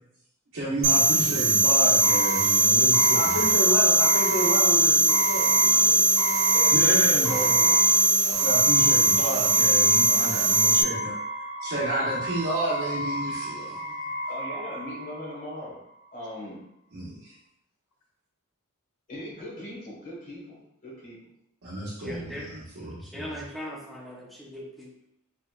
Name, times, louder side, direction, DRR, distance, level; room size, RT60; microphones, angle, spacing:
voice 1, 0.5-3.5 6.7-7.6 8.2-11.1 11.6-13.9 16.9-17.3 21.6-23.4, right 1 dB, 60° right, -9 dB, 0.7 m, -31 dB
sound 1, 0.8-10.8, right 2 dB, 90° right, 0.4 m, -21 dB
sound 2, 2.0-15.6, equal, 60° left, 1.3 m, -32 dB
voice 2, 3.1-6.2, left 2 dB, 80° left, 0 dB, 0.6 m, -30 dB
voice 3, 6.5-7.8 14.3-15.8 16.1-16.6 19.1-21.2, left 1 dB, 40° left, -5 dB, 1.0 m, -39 dB
voice 4, 13.2-13.8 22.0-22.5 23.0-24.9, equal, ahead, -4 dB, 0.4 m, -40 dB
2.8 x 2.1 x 2.3 m, 0.77 s
head